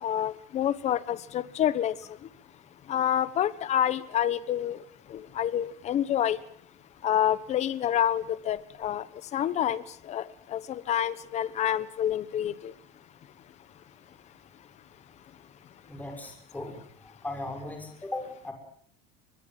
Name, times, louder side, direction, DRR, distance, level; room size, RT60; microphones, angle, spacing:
voice 1, 0.0-2.0 2.9-4.8 5.1-6.4 7.0-9.0 9.3-9.8 10.1-12.7, left 10 dB, 35° left, 1.2 m, -28 dB
voice 2, 15.9-18.5, left 2 dB, 10° left, 6.5 m, -38 dB
23.0 x 21.5 x 7.6 m
cardioid pair, 150°, 19 cm